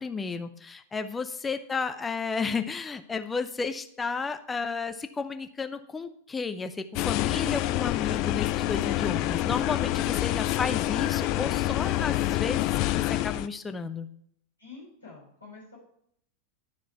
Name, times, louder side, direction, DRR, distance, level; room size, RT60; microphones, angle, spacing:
voice 1, 0.0-14.1, left 4 dB, 15° left, 9 dB, 0.7 m, -33 dB
sound 1, 6.9-13.5, left 16 dB, 40° left, 0.4 m, -27 dB
voice 2, 14.6-15.8, left 4 dB, 80° left, -8 dB, 3.4 m, -47 dB
12.0 x 5.0 x 4.5 m, 0.69 s
figure-of-eight pair, 90°, 0 cm